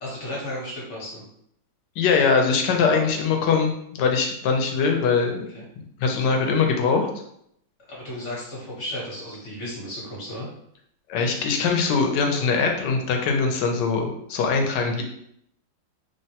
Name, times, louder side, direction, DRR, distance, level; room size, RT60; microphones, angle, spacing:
voice 1, 0.0-1.2 2.8-3.2 5.5-5.7 7.9-10.5, left 1 dB, 45° left, -5 dB, 1.1 m, -34 dB
voice 2, 2.0-5.5 6.0-7.1 11.1-15.0, left 5 dB, 75° left, 3 dB, 1.1 m, -22 dB
3.4 x 2.1 x 2.8 m, 0.71 s
omnidirectional pair, 2.0 m